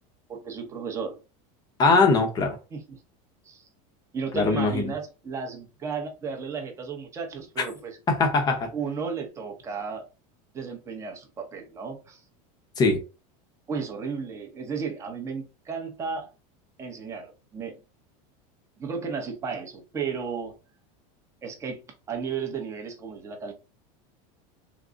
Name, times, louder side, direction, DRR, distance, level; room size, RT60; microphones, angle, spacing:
voice 1, 0.3-1.2 2.7-3.0 3.4-3.7 4.1-8.0 8.7-10.0 10.5-12.2 13.7-16.3 16.8-17.8 18.8-20.5 21.4-21.8 22.1-23.5, right 5 dB, 15° right, 0.7 m, -34 dB
voice 2, 1.8-2.6 4.3-4.9 7.6-7.7 8.1-8.7 12.8-13.0, left 3 dB, 20° left, 0.7 m, -21 dB
3.8 x 2.0 x 3.5 m
supercardioid pair, 170°, 18 cm